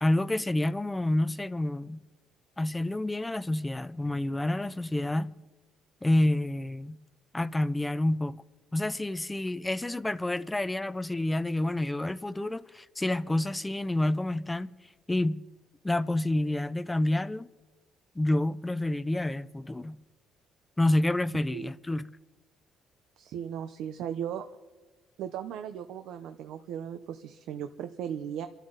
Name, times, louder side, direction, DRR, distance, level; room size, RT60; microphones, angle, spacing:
voice 1, 0.0-2.0 2.6-5.3 6.0-7.0 7.3-8.4 8.7-14.7 15.1-15.4 15.8-17.5 18.2-20.0 20.8-22.1, left 1 dB, 10° left, 0.4 m, -28 dB
voice 2, 23.2-24.5 25.2-28.5, right 9 dB, 75° right, 0.7 m, -37 dB
29.0 x 12.5 x 4.0 m
cardioid pair, 165°, 0 cm